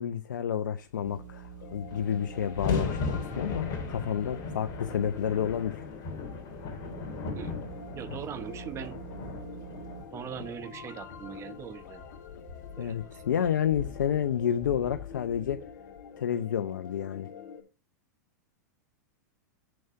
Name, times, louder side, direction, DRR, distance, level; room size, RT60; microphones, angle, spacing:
voice 1, 0.0-5.8 12.8-15.6 16.2-17.3, left 9 dB, 85° left, 0.6 m, -30 dB
sound 1, 1.0-5.9 6.5-10.1, right 7 dB, 60° right, 1.0 m, -46 dB
sound 2, 1.4-1.5 1.7-16.0, left 4 dB, 40° left, 3.0 m, -38 dB
sound 3, 1.6-17.6, left 7 dB, 70° left, 1.6 m, -47 dB
voice 2, 7.9-9.0 10.1-12.0 12.8-13.1, right 8 dB, 30° right, 1.0 m, -40 dB
7.1 x 6.2 x 5.5 m
hypercardioid pair, 115°, 10 cm